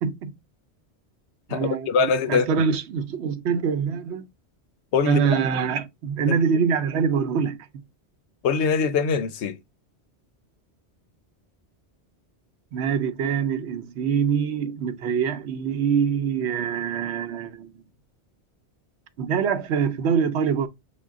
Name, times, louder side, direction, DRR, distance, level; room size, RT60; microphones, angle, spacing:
voice 1, 0.0-0.3 1.5-1.9 2.3-4.3 5.0-7.6 12.7-17.8 19.2-20.7, right 6 dB, 75° right, 0.9 m, -24 dB
voice 2, 1.5-2.6 4.9-5.2 6.2-6.4 8.4-9.6, left 5 dB, 85° left, 0.9 m, -23 dB
6.2 x 2.2 x 3.5 m
omnidirectional pair, 1.1 m